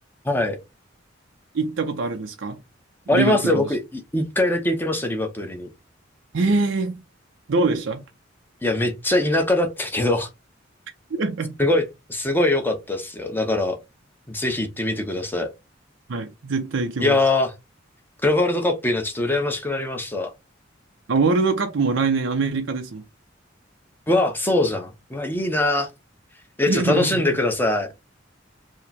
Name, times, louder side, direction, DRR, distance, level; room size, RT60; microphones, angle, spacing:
voice 1, 0.2-0.6 3.1-5.7 8.6-10.3 11.6-13.8 14.3-15.5 17.0-17.5 18.2-20.3 24.1-25.9 26.6-27.9, left 2 dB, 10° left, 0.8 m, -22 dB
voice 2, 1.5-2.6 3.1-3.7 6.3-7.0 7.5-8.0 11.1-11.6 16.1-17.2 21.1-23.0 26.7-27.4, right 3 dB, 80° right, 0.6 m, -23 dB
4.7 x 2.1 x 4.1 m
head